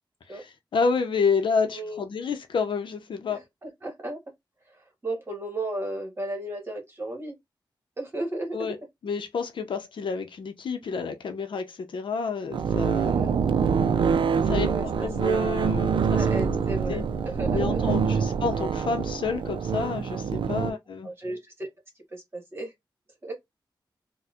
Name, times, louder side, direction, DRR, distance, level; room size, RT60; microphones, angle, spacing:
voice 1, 0.3-3.4 8.5-8.8 9.0-13.1 14.4-16.3 16.9-17.0 17.5-21.1, left 5 dB, 80° left, 0.6 m, -29 dB
voice 2, 3.3-4.2 5.0-7.3 8.0-8.7 13.1-13.4 14.5-15.1 16.1-18.0 21.0-21.7 22.1-22.7 23.2-23.3, right 1 dB, 30° right, 1.3 m, -34 dB
sound 1, 12.5-20.7, right 6 dB, 85° right, 0.4 m, -25 dB
4.2 x 2.2 x 2.4 m
wide cardioid pair, 165°, 8 cm